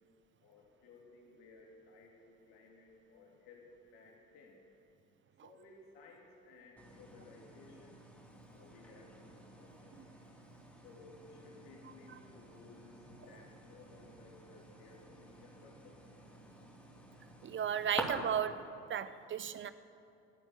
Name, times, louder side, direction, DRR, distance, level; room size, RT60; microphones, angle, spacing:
voice 1, 0.4-4.6 5.4-8.0 8.5-10.0 10.8-13.0 13.3-16.0, left 3 dB, 55° left, 0 dB, 2.9 m, -58 dB
sound 1, 6.8-18.0, equal, 5° left, 2.6 m, -51 dB
voice 2, 17.4-18.6 18.9-19.7, right 8 dB, 25° right, 14 dB, 0.6 m, -34 dB
17.5 x 8.0 x 9.0 m, 2.7 s
figure-of-eight pair, 65°, 47 cm